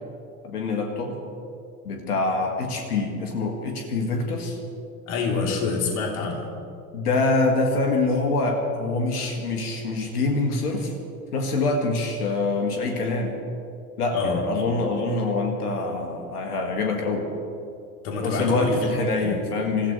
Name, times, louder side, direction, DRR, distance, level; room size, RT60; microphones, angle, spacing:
voice 1, 0.4-1.2 1.8-4.6 6.9-10.9 11.3-13.4 14.0-17.3 18.2-19.9, left 3 dB, 80° left, 3 dB, 2.0 m, -25 dB
voice 2, 5.1-6.5 14.1-14.4 18.0-18.8 19.2-19.4, left 4 dB, 60° left, 0 dB, 3.5 m, -26 dB
27.0 x 16.0 x 3.3 m, 2.6 s
figure-of-eight pair, 75°, 45 cm